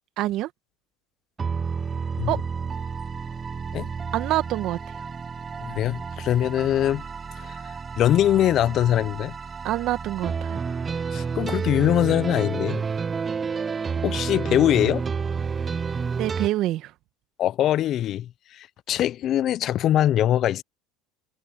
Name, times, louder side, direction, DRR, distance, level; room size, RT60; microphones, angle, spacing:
voice 1, 0.2-0.5 2.3-2.4 4.1-4.8 9.6-10.6 16.2-16.9, right 15 dB, 60° right, 1.7 m, -26 dB
sound 1, 1.4-16.5, right 5 dB, 30° right, 0.8 m, -30 dB
voice 2, 5.6-7.0 7.4-9.3 11.1-12.8 14.0-15.1 17.4-20.6, left 12 dB, 50° left, 0.8 m, -23 dB
hypercardioid pair, 85°, 0 cm